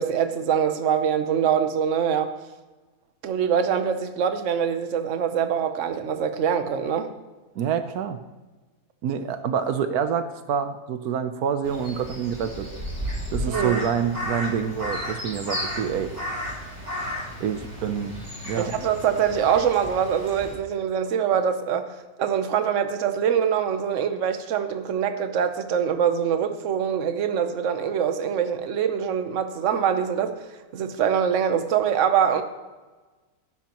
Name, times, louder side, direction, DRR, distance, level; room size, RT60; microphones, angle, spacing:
voice 1, 0.0-2.3 3.2-7.1 13.5-13.8 18.6-21.9 22.2-30.3 30.7-32.4, right 8 dB, 60° right, 8 dB, 1.2 m, -24 dB
voice 2, 7.6-8.2 9.0-12.7 13.3-16.1 17.4-18.2 18.5-18.7, right 7 dB, 85° right, 9 dB, 1.3 m, -27 dB
Crow, 11.6-20.5, equal, 35° right, 3.7 m, -33 dB
17.5 x 10.0 x 3.0 m, 1.2 s
omnidirectional pair, 1.6 m